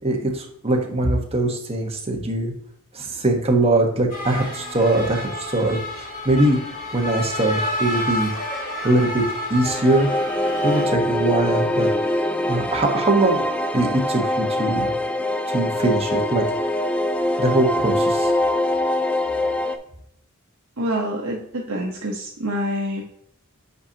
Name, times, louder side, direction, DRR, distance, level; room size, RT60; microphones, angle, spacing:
voice 1, 0.0-2.5 2.9-6.6 6.9-8.3 8.8-9.2 9.5-10.1 10.6-11.9 12.5-13.4 13.7-14.9 15.5-16.4 17.4-18.3, right 2 dB, 30° right, 1 dB, 1.2 m, -21 dB
sound 1, 4.1-10.8, left 1 dB, 40° left, 1.9 m, -30 dB
sound 2, 9.6-19.8, left 1 dB, 5° left, 0.4 m, -23 dB
voice 2, 20.8-23.0, equal, 70° right, -2 dB, 0.9 m, -26 dB
8.0 x 5.2 x 2.8 m, 0.68 s
head